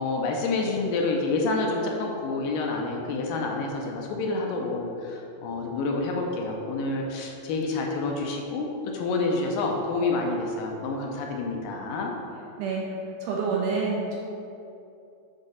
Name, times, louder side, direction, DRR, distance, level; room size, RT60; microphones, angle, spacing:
voice 1, 0.0-12.1, left 3 dB, 80° left, 0 dB, 2.2 m, -28 dB
voice 2, 13.2-14.2, right 4 dB, 75° right, -3 dB, 2.0 m, -27 dB
6.6 x 3.6 x 5.5 m, 2.7 s
omnidirectional pair, 4.2 m